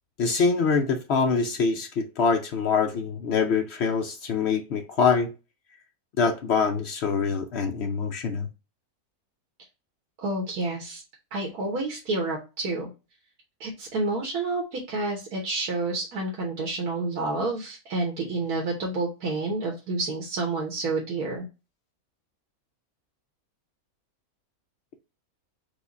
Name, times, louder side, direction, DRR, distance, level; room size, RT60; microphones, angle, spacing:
voice 1, 0.2-5.3 6.2-8.5, left 5 dB, 60° left, 0.7 m, -24 dB
voice 2, 10.2-11.0 11.3-12.9 13.6-21.4, right 2 dB, 75° right, 1.6 m, -29 dB
4.8 x 2.2 x 4.0 m
omnidirectional pair, 1.6 m